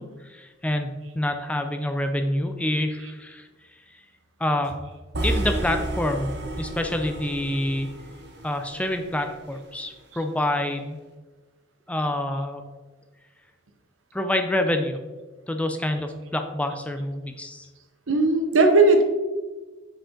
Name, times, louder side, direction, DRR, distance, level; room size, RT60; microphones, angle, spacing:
voice 1, 0.0-3.5 3.9-4.0 4.4-4.8 5.2-7.9 8.4-11.0 11.9-12.6 14.1-15.0 15.5-17.7, left 1 dB, 5° left, 5 dB, 0.4 m, -27 dB
sound 1, 5.1-9.3, right 1 dB, 55° right, 1.0 m, -31 dB
voice 2, 18.1-19.0, right 3 dB, 80° right, 5 dB, 0.9 m, -18 dB
7.2 x 5.0 x 3.7 m, 1.3 s
head